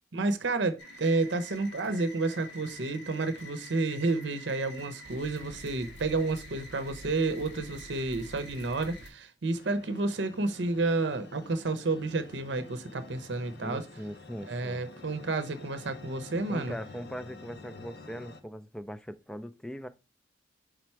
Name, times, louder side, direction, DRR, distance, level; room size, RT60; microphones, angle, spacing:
voice 1, 0.1-13.9 14.5-16.8, right 3 dB, 75° right, 0.7 m, -30 dB
sound 1, 0.8-9.1, equal, 80° left, 2.0 m, -47 dB
sound 2, 9.5-18.4, left 3 dB, 60° left, 0.7 m, -49 dB
voice 2, 13.6-14.8 16.5-19.9, equal, 5° left, 0.4 m, -40 dB
5.0 x 4.3 x 4.5 m
head